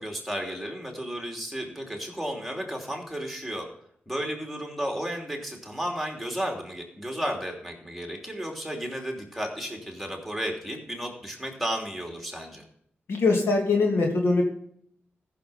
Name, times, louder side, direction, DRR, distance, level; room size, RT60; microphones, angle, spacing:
voice 1, 0.0-3.7 4.1-12.6, equal, ahead, 1 dB, 3.0 m, -33 dB
voice 2, 13.1-14.4, left 3 dB, 90° left, 1 dB, 2.9 m, -22 dB
14.5 x 6.7 x 5.8 m, 0.67 s
cardioid pair, 80°, 4 cm